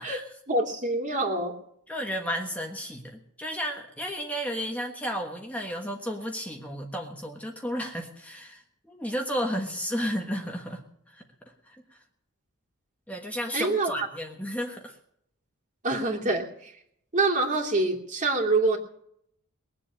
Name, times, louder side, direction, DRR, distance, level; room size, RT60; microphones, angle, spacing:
voice 1, 0.0-1.5 13.5-14.1 15.8-16.7 17.1-18.8, right 2 dB, 35° right, 0 dB, 2.7 m, -26 dB
voice 2, 1.9-11.2 11.7-12.0 13.1-14.9, equal, 5° left, 1 dB, 1.4 m, -33 dB
21.0 x 7.7 x 8.7 m, 0.73 s
head